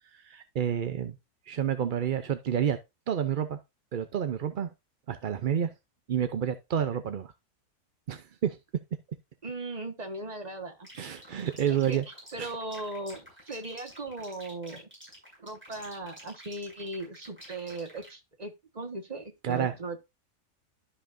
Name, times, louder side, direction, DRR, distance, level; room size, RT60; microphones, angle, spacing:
voice 1, 0.1-1.2 1.5-2.8 3.1-3.6 3.9-4.7 5.1-5.7 6.1-7.3 8.1-8.6 11.0-12.0 12.4-12.5 19.4-19.7, right 9 dB, 55° right, 0.6 m, -29 dB
voice 2, 9.4-10.9 11.7-12.0 12.3-14.9 15.4-20.0, right 2 dB, 30° right, 1.5 m, -38 dB
sound 1, 10.8-18.1, equal, 10° right, 6.0 m, -50 dB
12.5 x 5.6 x 2.6 m
omnidirectional pair, 1.5 m